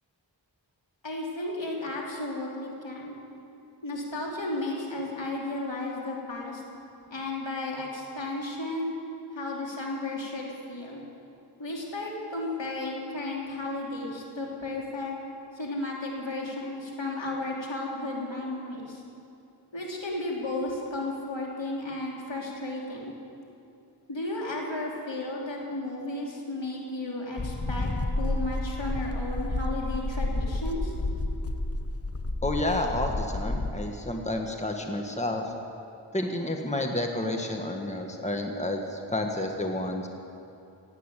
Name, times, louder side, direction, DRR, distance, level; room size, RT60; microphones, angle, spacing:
voice 1, 1.0-3.2 3.8-6.6 7.1-8.9 9.3-11.0 11.6-15.1 15.5-19.0 19.7-23.1 24.1-27.9 28.2-30.9, left 2 dB, 80° left, -3 dB, 3.2 m, -34 dB
sound 1, 27.4-33.8, left 2 dB, 30° left, 1.0 m, -30 dB
voice 2, 32.4-35.4 36.1-40.1, left 1 dB, 15° left, 2 dB, 1.6 m, -30 dB
16.5 x 9.1 x 9.1 m, 2.6 s
wide cardioid pair, 40°, 44 cm